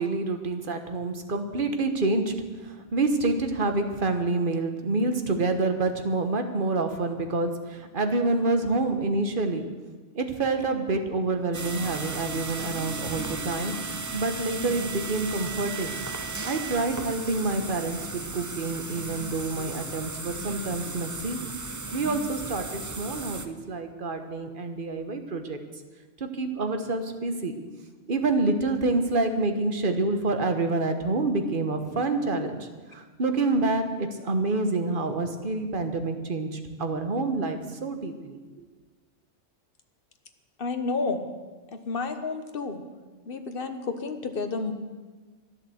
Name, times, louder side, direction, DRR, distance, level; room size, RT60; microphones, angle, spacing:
voice 1, 0.0-2.3 2.6-9.7 10.1-16.0 16.4-21.4 21.9-25.6 26.2-27.5 28.1-38.6, right 3 dB, 45° right, 7 dB, 1.4 m, -27 dB
sound 1, 11.5-23.5, right 3 dB, 20° right, 0.5 m, -35 dB
voice 2, 40.6-41.3 41.7-42.8 43.3-44.7, left 4 dB, 50° left, 7 dB, 1.3 m, -30 dB
12.0 x 11.0 x 7.9 m, 1.3 s
omnidirectional pair, 1.3 m